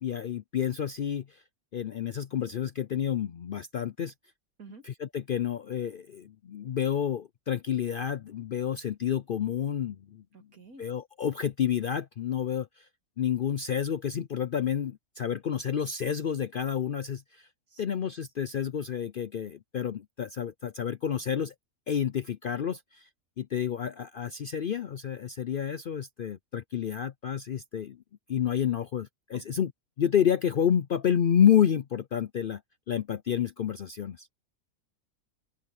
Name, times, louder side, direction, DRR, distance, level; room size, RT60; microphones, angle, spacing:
voice 1, 0.0-1.4 1.7-4.1 4.8-10.2 10.8-12.9 13.2-17.5 17.8-21.5 21.9-23.1 23.4-28.0 28.3-29.7 30.0-32.6 32.9-34.3, left 9 dB, 60° left, 0.5 m, -29 dB
voice 2, 10.3-10.8 17.7-17.8 29.3-29.4, right 4 dB, 80° right, 3.1 m, -49 dB
open air
omnidirectional pair, 1.5 m